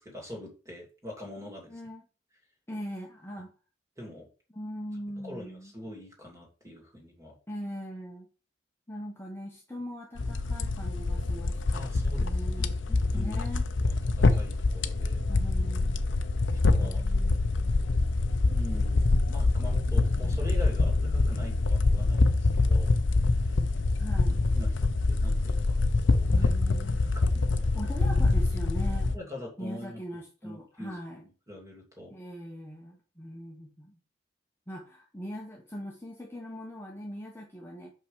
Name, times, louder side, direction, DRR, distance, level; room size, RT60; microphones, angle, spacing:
voice 1, 0.0-1.7 4.0-4.3 5.2-7.4 11.7-13.5 14.2-15.2 16.3-17.1 18.5-23.6 24.1-24.2 24.5-25.6 26.1-26.5 26.9-27.9 29.1-30.0 30.4-32.1, left 1 dB, 15° right, 0 dB, 2.7 m, -44 dB
voice 2, 1.7-2.0 2.7-3.5 4.5-5.7 7.5-8.3 8.9-11.9 12.2-12.7 13.1-13.7 15.3-16.1 16.7-17.7 24.0-24.4 26.3-27.1 27.7-29.1 29.6-31.2 32.1-34.0 34.7-37.9, equal, 15° left, -1 dB, 1.1 m, -41 dB
sound 1, 10.2-29.2, left 3 dB, 80° left, 0.7 m, -25 dB
5.8 x 5.7 x 5.0 m, 0.35 s
head